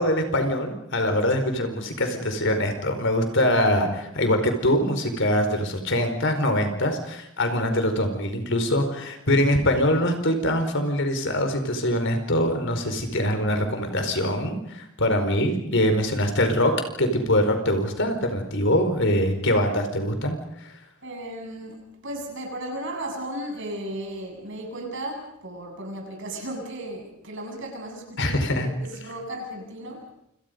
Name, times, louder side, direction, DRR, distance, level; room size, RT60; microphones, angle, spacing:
voice 1, 0.0-16.7 17.0-20.7 28.2-28.7, left 1 dB, 60° left, 7 dB, 4.8 m, -23 dB
voice 2, 21.0-30.1, right 1 dB, 60° right, 2 dB, 7.8 m, -35 dB
29.0 x 28.0 x 5.4 m, 0.75 s
head